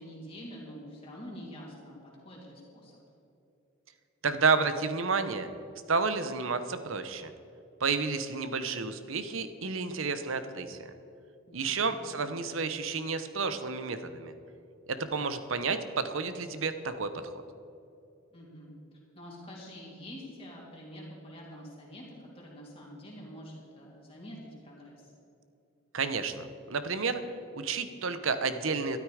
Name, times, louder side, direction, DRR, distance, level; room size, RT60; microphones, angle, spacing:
voice 1, 0.0-3.0 11.5-12.1 18.3-18.7 19.1-25.1, equal, 25° left, -4 dB, 2.9 m, -46 dB
voice 2, 4.2-5.5 5.9-7.3 7.8-10.9 11.5-14.3 14.9-17.3 25.9-27.2 27.5-29.0, right 4 dB, 70° right, 11 dB, 0.9 m, -31 dB
13.0 x 12.5 x 5.0 m, 2.7 s
head